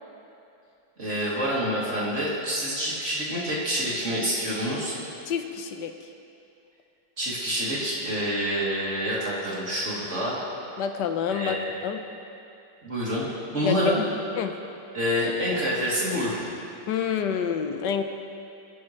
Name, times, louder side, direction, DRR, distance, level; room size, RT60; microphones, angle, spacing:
voice 1, 1.0-5.0 7.2-10.4 11.3-11.7 12.8-13.3 13.5-14.0 14.9-16.5, equal, 40° right, -7 dB, 3.3 m, -27 dB
voice 2, 5.3-5.9 10.8-11.6 11.8-12.0 13.6-13.9 14.4-14.5 16.9-18.0, left 7 dB, 70° left, 7 dB, 1.4 m, -27 dB
22.5 x 10.5 x 3.3 m, 2.7 s
omnidirectional pair, 2.0 m